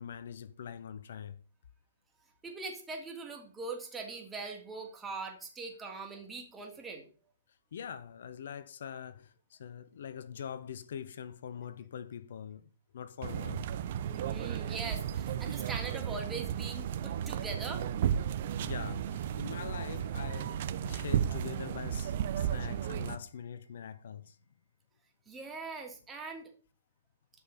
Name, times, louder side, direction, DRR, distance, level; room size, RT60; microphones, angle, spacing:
voice 1, 0.0-1.4 7.7-13.7 15.5-15.7 18.6-24.4, left 8 dB, 60° left, 0.9 m, -43 dB
voice 2, 2.4-7.1 14.1-17.9 25.3-26.5, right 4 dB, 10° right, 3.0 m, -41 dB
sound 1, 13.2-23.2, right 9 dB, 50° right, 1.0 m, -34 dB
13.5 x 5.5 x 6.9 m
hypercardioid pair, 130°, 0 cm